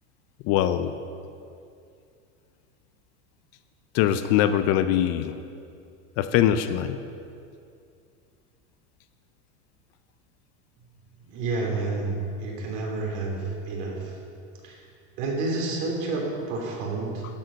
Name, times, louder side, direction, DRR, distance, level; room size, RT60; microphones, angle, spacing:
voice 1, 0.4-0.9 3.9-5.4 6.2-7.0, left 11 dB, 40° left, 10 dB, 0.5 m, -22 dB
voice 2, 11.3-12.1 12.4-14.2 14.6-14.8 15.2-17.3, right 3 dB, 65° right, -1 dB, 3.2 m, -29 dB
12.0 x 7.9 x 5.7 m, 2.5 s
supercardioid pair, 140°, 39 cm